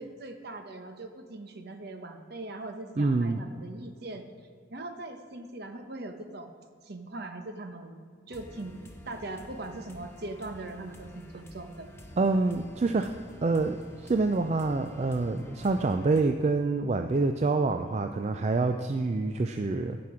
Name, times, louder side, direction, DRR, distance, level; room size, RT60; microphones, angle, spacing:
voice 1, 0.0-4.2 4.7-6.5 6.8-8.0 8.3-8.7 9.0-11.9, right 2 dB, 55° right, 6 dB, 1.0 m, -40 dB
voice 2, 3.0-3.4 12.2-13.1 13.4-20.0, right 3 dB, 35° right, 6 dB, 0.3 m, -26 dB
sound 1, 8.3-16.2, equal, 15° left, 0.9 m, -49 dB
15.0 x 6.0 x 4.9 m, 2.1 s
head